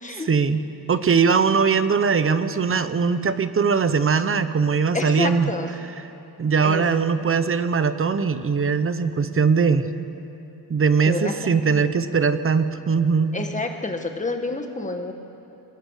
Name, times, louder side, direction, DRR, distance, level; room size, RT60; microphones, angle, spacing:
voice 1, 0.2-5.5 6.4-9.9 10.7-13.4, right 5 dB, 35° right, 12 dB, 1.0 m, -21 dB
voice 2, 4.9-5.7 6.6-6.8 11.0-11.9 13.3-15.1, left 3 dB, 20° left, 4 dB, 1.8 m, -29 dB
29.0 x 21.5 x 6.7 m, 3.0 s
wide cardioid pair, 140°, 37 cm